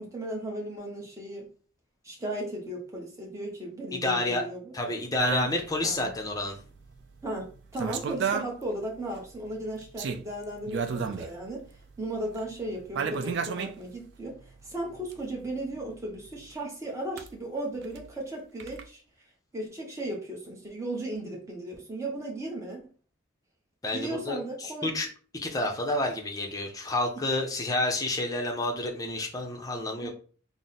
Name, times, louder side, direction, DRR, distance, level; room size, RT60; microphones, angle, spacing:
voice 1, 0.0-1.5 2.0-4.9 5.8-6.0 7.2-11.7 12.0-19.0 19.5-22.8 23.9-24.9 27.1-27.2 30.0-30.1, right 1 dB, 15° right, -1 dB, 0.8 m, -36 dB
voice 2, 3.9-4.4 4.7-6.6 23.8-25.1 25.3-30.1, left 2 dB, 15° left, 2 dB, 0.5 m, -29 dB
sound 1, 5.2-8.5 8.8-8.9 9.1-13.7 14.4-16.1 16.3-16.4 17.2-17.3 17.9-18.1 18.6-18.8, right 6 dB, 55° right, 0.3 m, -32 dB
3.6 x 2.0 x 4.0 m, 0.40 s
head